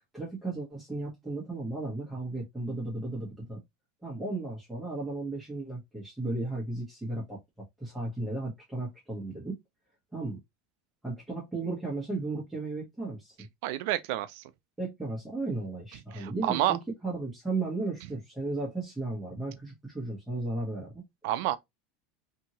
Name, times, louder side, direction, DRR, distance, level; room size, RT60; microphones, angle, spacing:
voice 1, 0.1-3.6 4.0-7.4 7.8-9.6 10.1-10.4 11.0-13.4 14.8-21.0, right 2 dB, 5° right, 1.1 m, -35 dB
voice 2, 13.6-14.4 16.1-16.8 21.2-21.6, right 14 dB, 70° right, 0.4 m, -29 dB
2.8 x 2.6 x 2.9 m
supercardioid pair, 130°, 0 cm